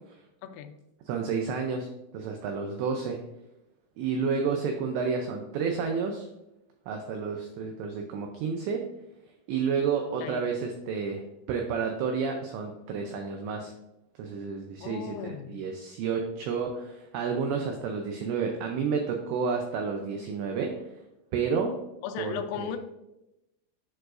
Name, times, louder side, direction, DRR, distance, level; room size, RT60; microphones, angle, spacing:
voice 1, 0.4-0.9 10.2-10.6 14.8-15.6 22.0-22.8, left 9 dB, 85° left, 7 dB, 3.2 m, -37 dB
voice 2, 1.1-1.9 2.1-3.2 4.0-6.3 6.9-8.8 9.5-13.7 14.2-20.8 21.3-21.8 22.2-22.8, right 5 dB, 85° right, 3 dB, 2.5 m, -30 dB
10.5 x 4.7 x 2.5 m, 0.92 s
omnidirectional pair, 5.8 m